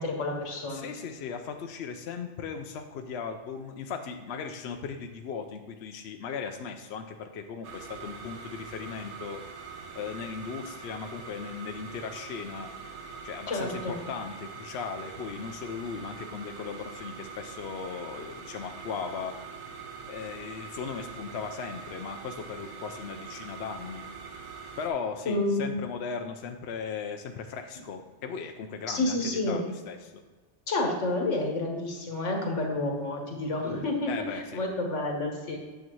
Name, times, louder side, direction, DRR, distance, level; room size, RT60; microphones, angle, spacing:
voice 1, 0.0-0.8 13.5-14.0 25.3-25.7 28.9-29.6 30.7-35.6, left 2 dB, 85° left, 1 dB, 1.7 m, -29 dB
voice 2, 0.7-9.4 10.0-12.7 13.2-19.4 20.1-24.1 24.8-29.2 29.5-30.1 34.1-34.6, left 6 dB, 65° left, 5 dB, 0.8 m, -37 dB
sound 1, 7.6-24.9, right 5 dB, 75° right, 1.1 m, -43 dB
8.7 x 7.0 x 3.1 m, 1.3 s
omnidirectional pair, 1.2 m